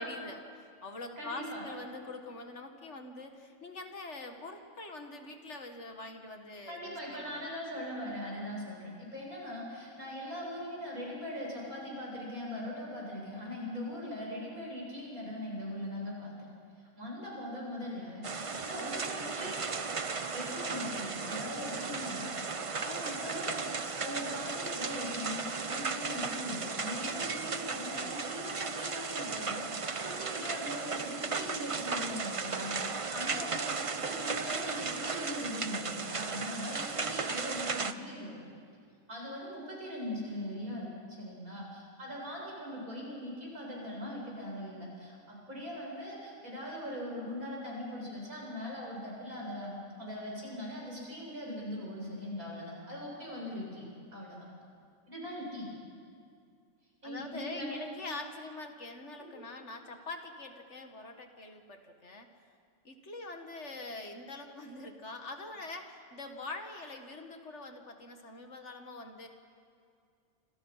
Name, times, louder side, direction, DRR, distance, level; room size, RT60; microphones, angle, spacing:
voice 1, 0.0-7.5 18.7-19.7 21.7-21.8 22.8-23.3 57.0-62.3 62.8-69.3, left 2 dB, 55° left, 5 dB, 2.1 m, -44 dB
voice 2, 1.2-1.6 6.7-16.3 17.0-19.7 20.3-22.3 22.7-23.7 24.0-32.8 33.1-38.4 39.1-54.4 55.1-55.7 57.0-57.8 59.3-59.5, left 1 dB, 80° right, -3 dB, 8.3 m, -40 dB
sound 1, 18.2-37.9, right 4 dB, 30° right, 0.6 m, -36 dB
29.5 x 26.0 x 5.7 m, 2.3 s
omnidirectional pair, 1.5 m